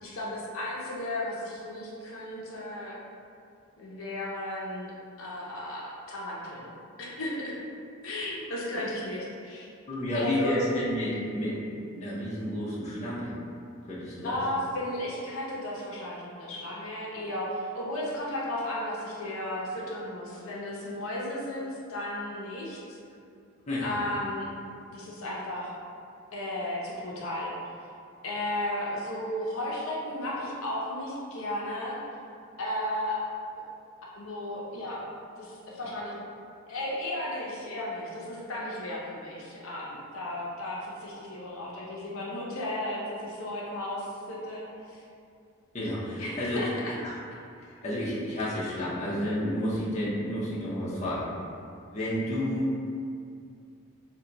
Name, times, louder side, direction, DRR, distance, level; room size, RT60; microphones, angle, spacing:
voice 1, 0.0-3.0 3.8-4.9 5.2-5.8 6.1-6.7 7.0-7.6 8.0-9.7 10.1-10.6 14.2-23.0 23.8-24.5 24.9-25.7 26.3-27.5 28.2-32.0 32.6-33.3 34.1-35.1 35.4-36.2 36.7-44.6 44.9-45.0 46.2-47.0, left 1 dB, 75° left, -4 dB, 0.5 m, -34 dB
voice 2, 9.9-11.6 11.9-13.3 13.9-14.4 23.7-24.0 45.7-46.6 47.0-47.1 47.7-51.2 51.9-52.7, left 1 dB, 30° left, -8 dB, 0.6 m, -30 dB
2.8 x 2.2 x 3.8 m, 2.4 s
head